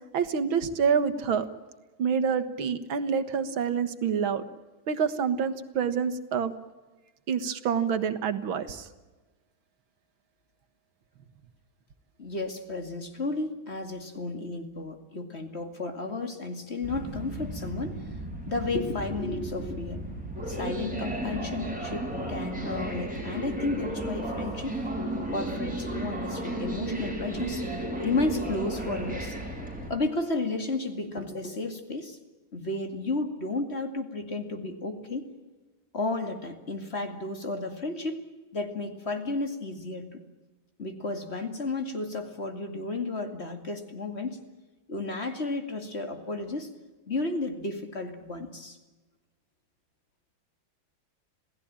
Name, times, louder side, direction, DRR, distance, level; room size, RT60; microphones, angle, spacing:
voice 1, 0.1-1.5 2.0-4.4 4.9-6.5 7.3-8.9, right 6 dB, 85° right, 11 dB, 2.2 m, -27 dB
voice 2, 12.2-18.0 18.5-20.0 20.5-24.8 25.3-29.4 29.9-32.2 32.5-35.3 35.9-38.2 38.5-40.2 40.8-44.4 44.9-46.7 47.1-48.8, left 2 dB, 35° left, 6 dB, 2.5 m, -33 dB
sound 1, 16.8-29.9, right 1 dB, 5° right, 5.5 m, -34 dB
27.5 x 17.0 x 8.9 m, 1.2 s
omnidirectional pair, 2.2 m